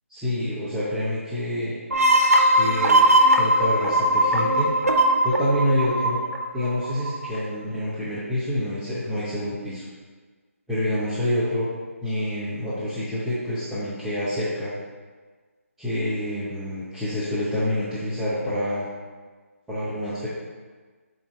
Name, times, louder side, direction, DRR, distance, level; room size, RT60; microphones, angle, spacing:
voice 1, 0.1-1.7 2.5-3.0 3.3-4.7 5.2-6.2 6.5-9.8 10.7-11.7 12.0-14.7 15.8-18.9 19.7-20.3, left 1 dB, 5° right, -14 dB, 0.7 m, -27 dB
sound 1, 1.9-7.4, right 1 dB, 85° right, 0.8 m, -20 dB
7.1 x 2.8 x 4.7 m, 1.4 s
figure-of-eight pair, 155°, 8 cm